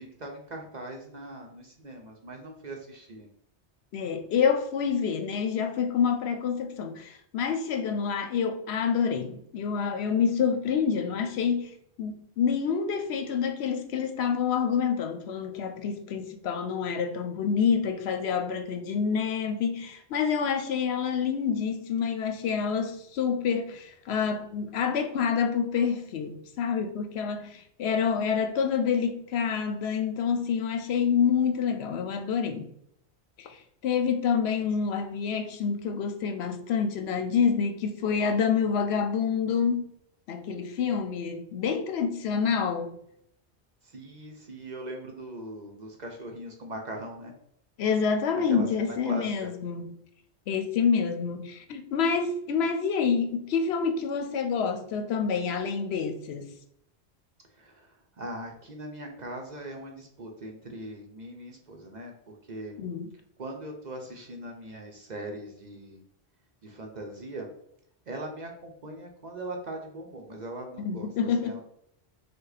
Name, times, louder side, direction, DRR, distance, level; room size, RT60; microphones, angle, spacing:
voice 1, 0.0-3.3 43.8-47.3 48.5-48.7 49.0-49.5 57.6-62.8 63.4-66.0 66.6-67.5 68.1-71.6, right 1 dB, 45° right, 0.7 m, -40 dB
voice 2, 3.9-11.7 12.0-32.7 33.4-33.6 33.8-39.9 40.3-43.0 47.8-49.9 50.5-56.5 62.8-63.1 70.8-71.6, left 6 dB, 70° left, 0.8 m, -27 dB
5.2 x 2.2 x 4.0 m
omnidirectional pair, 1.2 m